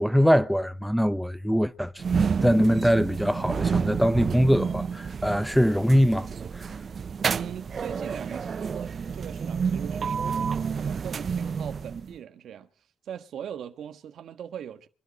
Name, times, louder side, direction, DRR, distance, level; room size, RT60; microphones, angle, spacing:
voice 1, 0.0-6.3 6.5-6.7, equal, ahead, 0.7 m, -23 dB
sound 1, 2.0-12.2, right 6 dB, 45° right, 0.8 m, -29 dB
voice 2, 7.3-12.7 13.0-14.9, right 9 dB, 70° right, 1.5 m, -40 dB
24.0 x 12.0 x 4.2 m
cardioid pair, 90°, 0 cm